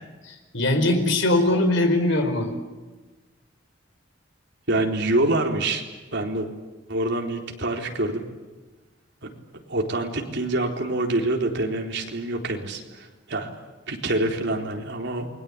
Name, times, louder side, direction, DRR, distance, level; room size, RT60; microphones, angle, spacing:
voice 1, 0.2-2.5, left 1 dB, 70° left, 6 dB, 5.0 m, -21 dB
voice 2, 4.7-5.8 6.1-6.5 6.9-8.3 9.7-13.5 13.9-15.3, right 2 dB, 65° right, 2 dB, 4.1 m, -26 dB
28.5 x 22.5 x 8.6 m, 1.2 s
head